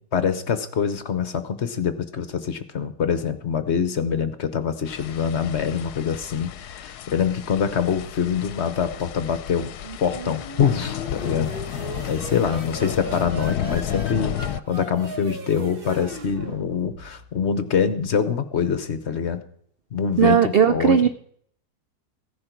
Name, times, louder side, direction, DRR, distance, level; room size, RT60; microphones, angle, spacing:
voice 1, 0.1-9.8 10.0-11.5 12.0-14.4 14.7-19.4 19.9-21.1, left 7 dB, 50° left, 11 dB, 1.1 m, -25 dB
sound 1, 4.9-14.6, left 11 dB, 75° left, 1.2 m, -33 dB
sound 2, 9.8-17.4, right 3 dB, 35° right, 1.3 m, -38 dB
voice 2, 20.2-21.1, right 8 dB, 70° right, 10 dB, 0.5 m, -17 dB
15.5 x 10.5 x 4.5 m, 0.63 s
omnidirectional pair, 1.7 m